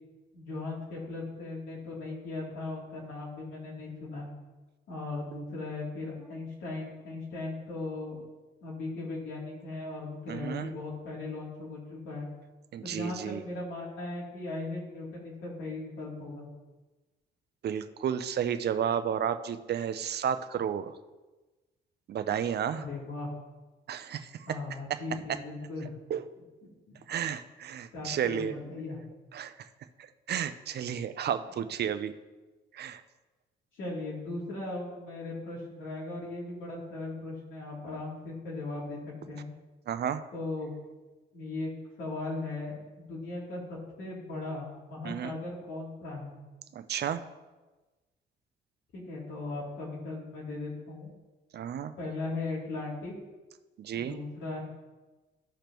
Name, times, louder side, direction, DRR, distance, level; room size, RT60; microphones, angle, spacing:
voice 1, 0.3-4.3 4.9-8.2 8.6-12.3 12.8-16.5 22.8-23.3 24.5-25.9 26.9-27.0 27.9-29.0 33.7-39.0 39.3-39.5 40.3-40.7 41.3-41.7 42.0-46.4 48.9-51.1 52.0-53.1 53.9-54.6, left 2 dB, 75° left, -4 dB, 3.0 m, -38 dB
voice 2, 10.3-10.7 12.7-13.4 17.6-20.9 22.1-22.8 23.9-24.3 26.1-26.2 27.1-28.6 29.3-29.5 30.3-32.1 32.7-33.0 39.9-40.2 45.0-45.4 46.7-47.2 51.5-51.9 53.8-54.2, right 8 dB, 55° right, 10 dB, 0.6 m, -32 dB
14.5 x 5.0 x 3.0 m, 1.2 s
cardioid pair, 90°, 20 cm